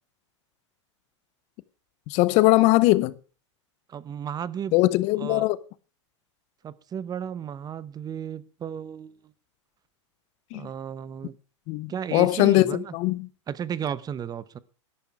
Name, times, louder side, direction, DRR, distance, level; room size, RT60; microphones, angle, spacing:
voice 1, 2.1-3.1 4.7-5.6 10.5-10.7 11.7-13.3, left 19 dB, 45° left, 0.8 m, -21 dB
voice 2, 3.9-4.7 5.2-5.5 6.6-9.2 10.5-11.3 11.9-12.9 13.5-14.6, right 8 dB, 25° right, 0.9 m, -34 dB
12.5 x 11.5 x 4.7 m
hypercardioid pair, 110°, 16 cm